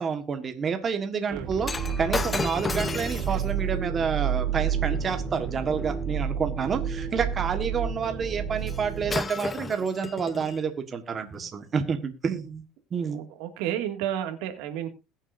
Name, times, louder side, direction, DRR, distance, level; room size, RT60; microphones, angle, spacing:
voice 1, 0.0-1.7 2.0-12.6 12.9-13.3, right 6 dB, 30° right, 7 dB, 1.4 m, -29 dB
sound 1, 1.3-9.2, right 7 dB, 55° right, 2.9 m, -30 dB
Shatter, 1.6-6.0 8.7-8.8 9.1-10.6 11.3-11.5, left 4 dB, 20° left, 0.7 m, -34 dB
voice 2, 13.1-14.9, right 11 dB, 85° right, 7 dB, 2.1 m, -31 dB
21.0 x 7.3 x 2.6 m, 0.27 s
cardioid pair, 130°, 0 cm